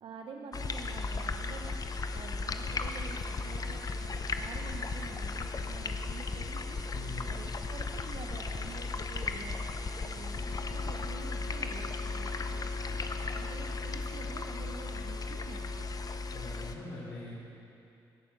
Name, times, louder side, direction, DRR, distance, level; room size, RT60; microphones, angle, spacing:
voice 1, 0.0-1.7 2.1-6.8 7.3-12.7 13.2-15.8, right 5 dB, 65° right, 2 dB, 0.9 m, -48 dB
sound 1, 0.5-16.8, left 3 dB, 40° left, 0.8 m, -36 dB
voice 2, 6.9-7.3 12.8-12.9 16.3-17.3, left 2 dB, 75° left, -9 dB, 3.2 m, -43 dB
17.5 x 7.0 x 5.3 m, 2.7 s
supercardioid pair, 55°, 10 cm